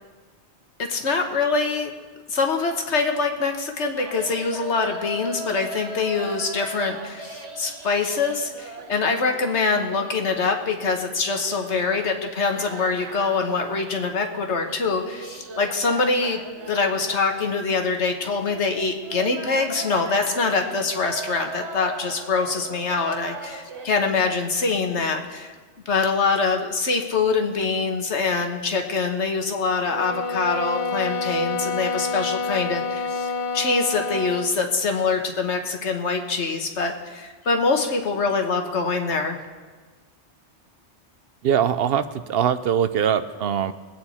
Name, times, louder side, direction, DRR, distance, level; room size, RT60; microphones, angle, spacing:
voice 1, 0.8-1.9 2.3-16.4 16.7-25.5 25.9-39.4, left 4 dB, 80° left, 4 dB, 1.6 m, -24 dB
sound 1, 3.9-23.9, right 3 dB, 85° right, 1.4 m, -39 dB
sound 2, 29.8-34.6, left 4 dB, 45° left, 0.5 m, -28 dB
voice 2, 41.4-43.7, right 8 dB, 65° right, 13 dB, 0.7 m, -22 dB
21.0 x 8.9 x 4.3 m, 1.4 s
omnidirectional pair, 1.2 m